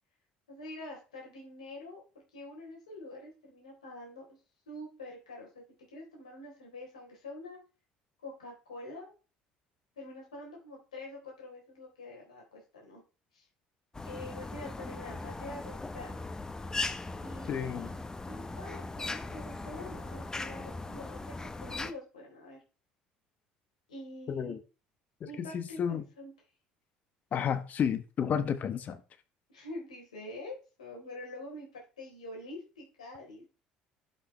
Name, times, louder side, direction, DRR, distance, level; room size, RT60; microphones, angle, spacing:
voice 1, 0.5-2.0 2.3-4.2 4.7-5.6 5.9-7.6 8.2-9.1 10.0-13.0 13.3-13.5 14.0-16.1 17.2-22.6 23.9-24.6 25.2-26.3 29.5-33.5, left 1 dB, 90° left, 3.9 m, -46 dB
sound 1, 13.9-21.9, left 3 dB, 15° left, 1.0 m, -39 dB
voice 2, 17.5-17.9 24.3-24.6 25.2-26.1 27.3-29.0, left 8 dB, 45° left, 1.3 m, -31 dB
11.5 x 6.0 x 3.3 m
hypercardioid pair, 65°, 4 cm